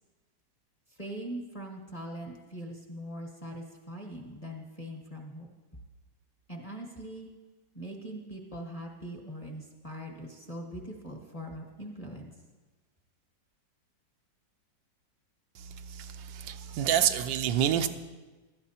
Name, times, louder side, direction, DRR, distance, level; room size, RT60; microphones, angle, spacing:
voice 1, 1.0-5.5 6.5-7.3 7.7-12.3, right 1 dB, 25° left, -1 dB, 1.1 m, -41 dB
voice 2, 15.9-17.9, right 10 dB, 90° right, 9 dB, 1.3 m, -27 dB
16.5 x 12.5 x 2.8 m, 1.2 s
omnidirectional pair, 1.9 m